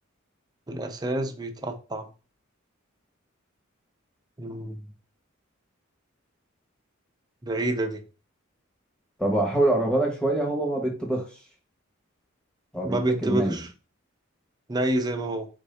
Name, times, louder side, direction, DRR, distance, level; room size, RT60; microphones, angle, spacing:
voice 1, 0.7-2.1 4.4-4.9 7.4-8.0 12.8-13.7 14.7-15.5, right 1 dB, 20° right, 0.5 m, -28 dB
voice 2, 9.2-11.2 12.7-13.6, right 1 dB, 5° left, 1.1 m, -25 dB
4.4 x 2.7 x 3.3 m
head